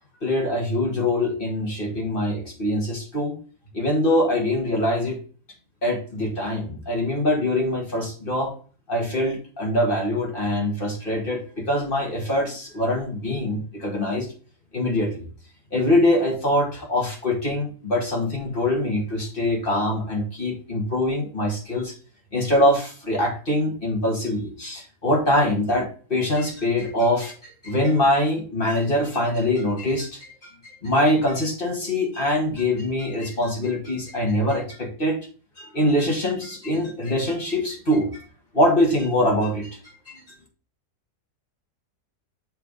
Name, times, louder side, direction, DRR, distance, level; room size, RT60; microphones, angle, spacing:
voice 1, 0.2-3.4 3.7-5.2 5.8-8.5 8.9-14.3 14.7-15.3 15.7-21.9 22.3-30.4 30.6-35.2 35.6-38.2 38.5-39.8 40.1-40.2, left 1 dB, 35° left, 0 dB, 2.1 m, -23 dB
6.9 x 3.5 x 5.2 m, 0.39 s
omnidirectional pair, 1.7 m